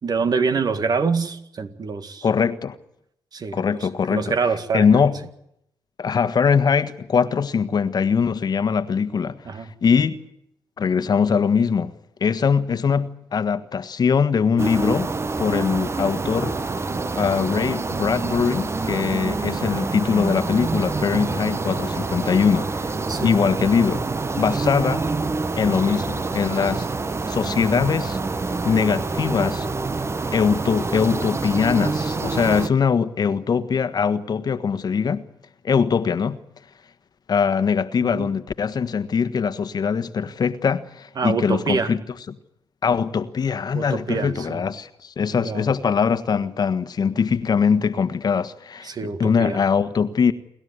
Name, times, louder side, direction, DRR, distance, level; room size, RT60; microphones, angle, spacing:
voice 1, 0.0-2.3 3.3-5.0 9.5-9.7 23.1-23.3 38.0-38.3 41.2-41.9 43.7-44.7 45.4-45.7 48.8-49.6, right 5 dB, 50° right, 1.9 m, -26 dB
voice 2, 2.2-2.8 3.5-4.3 4.7-5.1 6.0-10.2 10.8-11.9 12.2-15.1 15.4-16.6 17.1-22.9 23.2-24.0 24.4-25.0 25.6-26.9 27.3-28.2 28.6-29.7 30.3-35.2 35.6-36.4 37.3-42.0 42.8-50.3, left 6 dB, 55° left, 1.4 m, -22 dB
sound 1, 14.6-32.7, right 3 dB, 30° right, 1.1 m, -26 dB
28.5 x 12.5 x 9.6 m
supercardioid pair, 50°, 8 cm